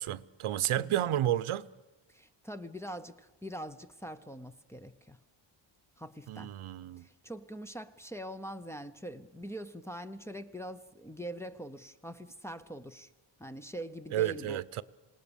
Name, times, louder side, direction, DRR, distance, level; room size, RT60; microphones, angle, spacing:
voice 1, 0.0-1.7 6.3-7.0 14.1-14.8, right 12 dB, 85° right, 0.9 m, -31 dB
voice 2, 0.8-1.1 2.1-5.2 6.0-6.5 7.0-13.1 13.4-14.6, equal, 5° left, 0.7 m, -43 dB
27.0 x 19.0 x 7.0 m
wide cardioid pair, 160°, 49 cm